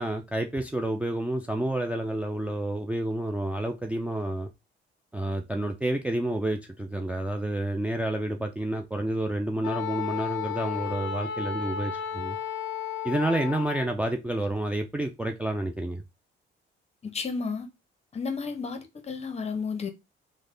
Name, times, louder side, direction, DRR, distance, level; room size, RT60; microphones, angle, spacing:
voice 1, 0.0-4.5 5.1-12.4 13.0-16.0, right 1 dB, 5° right, 0.3 m, -29 dB
Wind instrument woodwind instrument, 9.6-13.9, left 8 dB, 70° left, 0.4 m, -33 dB
voice 2, 17.1-17.7 18.1-18.8 19.1-19.9, left 5 dB, 30° left, 0.7 m, -31 dB
3.2 x 2.1 x 3.6 m
cardioid pair, 90°, 20 cm